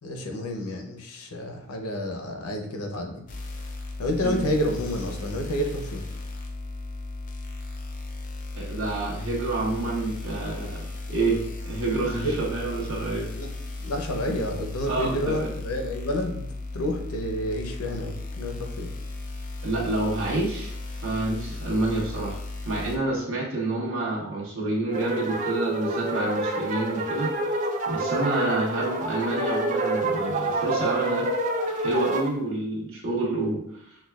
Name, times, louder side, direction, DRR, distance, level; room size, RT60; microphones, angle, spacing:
voice 1, 0.0-3.2 4.0-6.0 12.2-12.4 13.4-13.5 13.8-16.4 16.7-18.9, left 1 dB, 80° left, 3 dB, 0.7 m, -29 dB
sound 1, 3.3-23.0, left 2 dB, 35° left, 0.5 m, -36 dB
voice 2, 8.5-11.4 11.6-13.3 14.9-15.5 19.6-22.4 22.6-31.3 31.7-34.0, right 2 dB, 65° right, -4 dB, 1.3 m, -28 dB
sound 2, 24.9-32.3, right 2 dB, 35° right, 0.3 m, -27 dB
6.2 x 2.3 x 2.3 m, 0.72 s
head